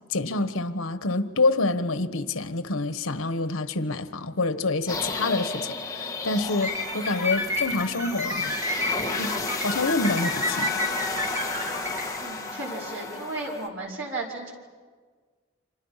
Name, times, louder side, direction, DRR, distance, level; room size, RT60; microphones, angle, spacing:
voice 1, 0.1-8.6 9.1-10.8, left 3 dB, 85° left, 1.3 m, -27 dB
sound 1, 4.9-13.7, left 3 dB, 15° left, 1.6 m, -32 dB
sound 2, 6.6-12.1, left 2 dB, 15° right, 4.4 m, -30 dB
voice 2, 12.2-14.5, right 2 dB, 75° right, 5.4 m, -34 dB
30.0 x 26.0 x 5.8 m
head